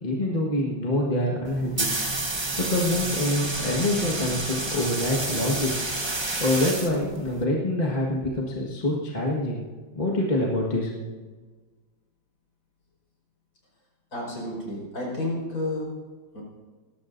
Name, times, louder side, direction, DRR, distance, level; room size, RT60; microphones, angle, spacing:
voice 1, 0.0-1.9 2.3-5.7 6.4-9.6 9.9-10.9, left 1 dB, 25° left, -3 dB, 1.6 m, -26 dB
sound 1, 1.4-7.4, right 2 dB, 20° right, 0.9 m, -30 dB
voice 2, 14.1-15.9 16.3-16.4, left 1 dB, 45° left, -2 dB, 5.6 m, -31 dB
20.5 x 17.5 x 2.7 m, 1.4 s
omnidirectional pair, 2.2 m